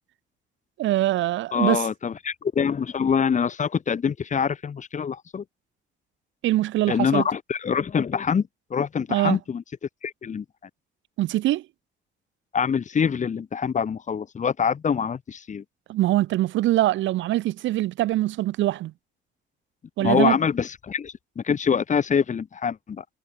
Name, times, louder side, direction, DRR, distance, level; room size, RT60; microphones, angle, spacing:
voice 1, 0.8-1.8 6.4-7.2 9.1-9.4 11.2-11.6 15.9-18.9 20.0-20.4, right 15 dB, 75° right, 0.5 m, -23 dB
voice 2, 1.5-5.4 6.9-9.6 10.0-10.4 12.5-15.6 20.0-23.0, left 6 dB, 40° left, 1.0 m, -25 dB
cardioid pair, 90°, 20 cm